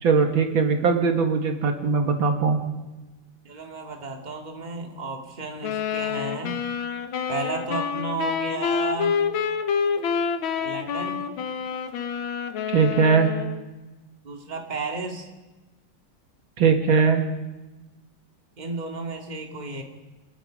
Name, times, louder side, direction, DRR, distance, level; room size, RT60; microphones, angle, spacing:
voice 1, 0.0-2.6 12.7-13.3 16.6-17.2, right 5 dB, 80° right, 4 dB, 2.5 m, -20 dB
voice 2, 3.4-6.6 7.3-9.1 10.6-11.2 14.2-15.3 18.6-19.8, right 3 dB, 20° right, 2 dB, 2.1 m, -33 dB
sound 1, 5.6-13.6, left 6 dB, 85° left, 1.9 m, -27 dB
26.5 x 20.0 x 5.1 m, 1.1 s
omnidirectional pair, 2.2 m